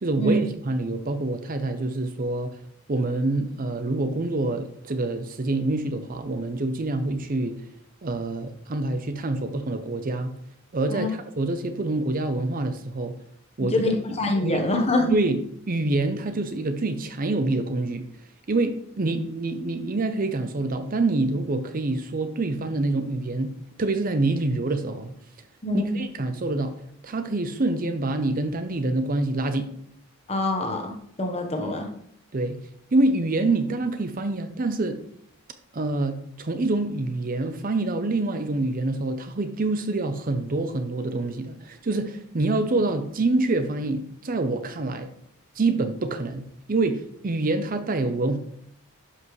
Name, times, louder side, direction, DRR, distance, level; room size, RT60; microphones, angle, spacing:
voice 1, 0.0-2.6 2.9-7.6 8.0-10.3 10.7-13.2 13.6-13.7 14.4-14.6 15.1-15.4 15.7-18.0 18.5-23.5 23.8-25.1 25.7-26.7 27.0-29.7 32.3-32.6 32.9-35.0 35.7-45.1 45.6-48.4, right 2 dB, 40° right, 9 dB, 0.6 m, -26 dB
voice 2, 13.7-15.1 25.6-26.0 30.3-31.9, left 1 dB, 30° left, 4 dB, 1.1 m, -25 dB
11.0 x 5.4 x 3.2 m, 0.69 s
head